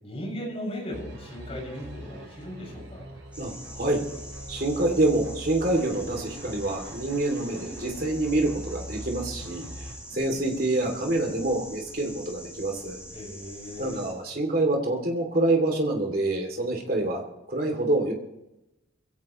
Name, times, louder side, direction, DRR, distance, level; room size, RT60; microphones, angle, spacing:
voice 1, 0.0-3.1 13.1-14.0, equal, 30° left, -2 dB, 6.9 m, -37 dB
sound 1, 0.9-9.9, equal, 80° right, 5.7 m, -42 dB
sound 2, 3.3-14.1, equal, 5° right, 7.0 m, -44 dB
voice 2, 3.4-4.0 4.5-9.6 10.1-13.0 13.8-17.2 17.5-18.1, right 2 dB, 50° right, 2 dB, 3.0 m, -26 dB
22.0 x 16.5 x 3.2 m, 0.93 s
head